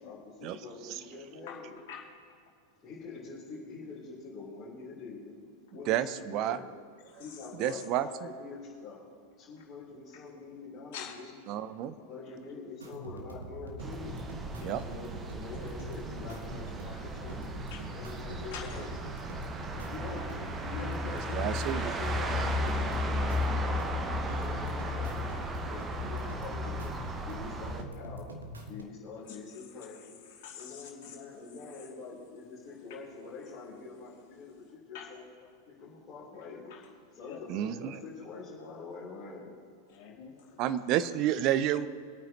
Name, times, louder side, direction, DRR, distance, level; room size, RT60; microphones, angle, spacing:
voice 1, 0.0-1.8 2.8-5.4 5.7-6.7 7.2-9.1 9.4-11.4 11.8-14.1 14.8-17.5 17.9-18.9 19.6-26.9 27.2-28.3 28.7-30.1 30.6-35.2 35.8-36.7 37.1-39.5, left 4 dB, 25° left, -10 dB, 3.8 m, -45 dB
voice 2, 1.9-2.3 7.1-7.8 10.1-10.2 10.9-11.1 14.6-14.8 17.7-17.8 18.5-18.8 29.3-29.4 30.3-31.2 34.9-35.1 36.7-36.8 37.2-37.4 39.9-40.6, left 8 dB, 50° left, -2 dB, 2.7 m, -46 dB
voice 3, 5.9-6.6 7.6-8.3 11.5-11.9 14.6-14.8 21.0-21.9 37.5-38.0 40.6-41.9, right 11 dB, 40° right, 13 dB, 0.6 m, -30 dB
sound 1, 12.8-28.8, right 2 dB, 75° right, 1.4 m, -44 dB
sound 2, 13.8-27.8, left 1 dB, 20° right, 1.0 m, -35 dB
24.0 x 9.0 x 3.0 m, 2.2 s
figure-of-eight pair, 90°, 0 cm